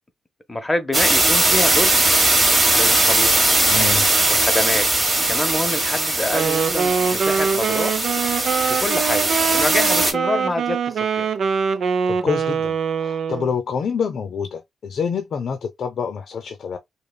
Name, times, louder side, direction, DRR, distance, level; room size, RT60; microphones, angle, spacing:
voice 1, 0.5-2.0 2.8-3.4 4.3-4.9 5.3-8.0 8.7-11.3, left 1 dB, 15° left, 0.6 m, -26 dB
sound 1, 0.9-10.1, right 2 dB, 25° right, 1.2 m, -19 dB
voice 2, 3.7-4.0 12.1-16.8, left 6 dB, 50° left, 0.6 m, -27 dB
Wind instrument woodwind instrument, 6.3-13.5, right 6 dB, 60° right, 0.4 m, -23 dB
5.2 x 2.2 x 2.2 m
cardioid pair, 140°, 0 cm